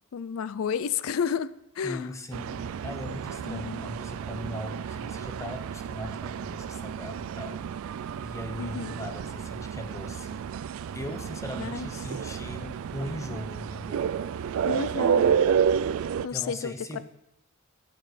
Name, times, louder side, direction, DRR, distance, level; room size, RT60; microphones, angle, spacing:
voice 1, 0.1-2.1 3.4-3.8 8.6-9.0 11.5-11.9 14.6-15.4 16.2-17.0, left 7 dB, 70° left, 16 dB, 0.4 m, -32 dB
voice 2, 1.8-7.6 8.2-10.4 10.9-14.1 16.3-17.0, left 1 dB, 15° left, 6 dB, 0.8 m, -39 dB
sound 1, 2.3-16.3, right 7 dB, 75° right, 0.3 m, -30 dB
14.0 x 7.3 x 3.3 m, 0.85 s
head